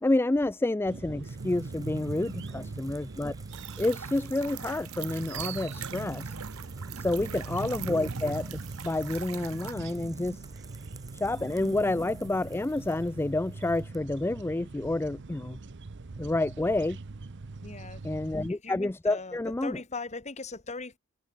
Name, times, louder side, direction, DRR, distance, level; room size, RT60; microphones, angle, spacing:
voice 1, 0.0-3.3 3.8-6.4 7.0-10.4 11.1-15.6 16.2-17.0 18.0-19.8, left 2 dB, 10° left, 0.3 m, -29 dB
sound 1, 0.8-18.5, right 3 dB, 55° right, 0.7 m, -41 dB
sound 2, 1.2-14.0, right 4 dB, 15° right, 1.3 m, -54 dB
sound 3, 3.5-9.7, right 10 dB, 75° right, 1.2 m, -43 dB
voice 2, 17.6-18.0 18.5-21.0, left 3 dB, 30° left, 1.7 m, -39 dB
head